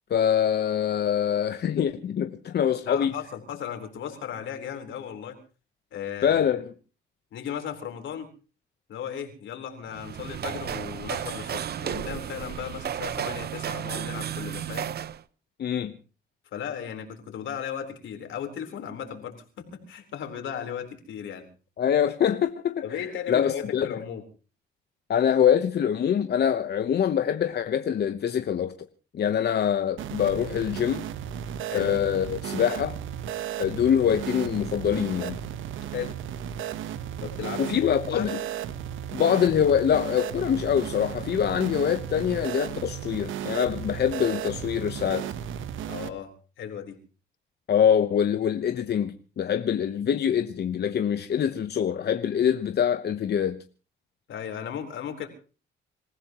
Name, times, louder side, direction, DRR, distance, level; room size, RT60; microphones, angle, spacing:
voice 1, 0.1-3.1 6.2-6.6 15.6-15.9 21.8-23.0 23.3-24.0 25.1-28.7 29.1-31.0 31.7-33.0 33.6-35.4 37.6-38.4 39.1-45.3 47.7-53.6, left 8 dB, 55° left, 1.0 m, -24 dB
voice 2, 2.8-5.4 5.9-6.4 7.3-8.3 8.9-14.9 16.5-21.5 22.8-24.2 31.7-31.9 35.9-36.1 37.2-38.3 45.9-47.0 54.3-55.3, left 8 dB, 75° left, 4.0 m, -35 dB
sound 1, 9.9-15.2, right 9 dB, 55° right, 0.8 m, -33 dB
sound 2, 30.0-46.1, right 10 dB, 80° right, 1.1 m, -35 dB
27.0 x 15.5 x 3.0 m
cardioid pair, 90°, 20 cm